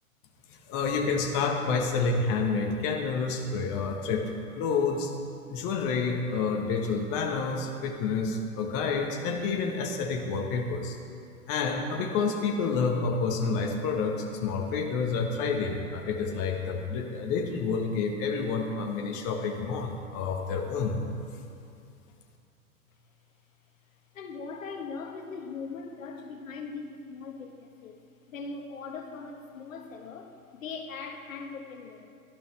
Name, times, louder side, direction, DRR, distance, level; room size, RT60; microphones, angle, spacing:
voice 1, 0.5-5.1 5.5-11.0 11.5-21.0, left 4 dB, 30° left, 2 dB, 1.2 m, -29 dB
voice 2, 24.1-28.0 28.3-32.1, left 4 dB, 60° left, 4 dB, 1.3 m, -40 dB
17.5 x 12.0 x 3.3 m, 2.5 s
figure-of-eight pair, 105°, 44 cm